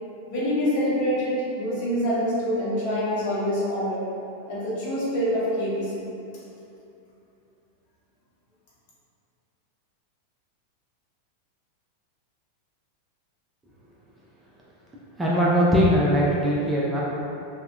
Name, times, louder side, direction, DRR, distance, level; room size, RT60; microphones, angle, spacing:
voice 1, 0.3-4.0 4.5-6.1, equal, 45° left, -9 dB, 0.8 m, -25 dB
voice 2, 15.2-17.0, equal, 10° right, -6 dB, 0.3 m, -20 dB
2.5 x 2.1 x 2.3 m, 2.7 s
figure-of-eight pair, 90°, 0 cm